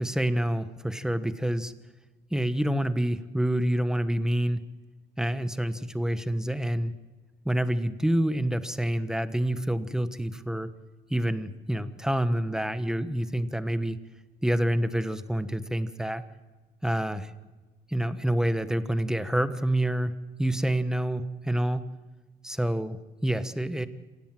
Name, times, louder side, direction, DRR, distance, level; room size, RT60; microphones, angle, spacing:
voice 1, 0.0-1.7 2.3-4.7 5.2-6.9 7.4-10.7 11.1-14.0 14.4-16.2 16.8-17.3 17.9-21.9 22.4-23.9, right 1 dB, 5° right, 11 dB, 1.2 m, -27 dB
27.0 x 16.5 x 7.7 m, 1.2 s
cardioid pair, 110°, 17 cm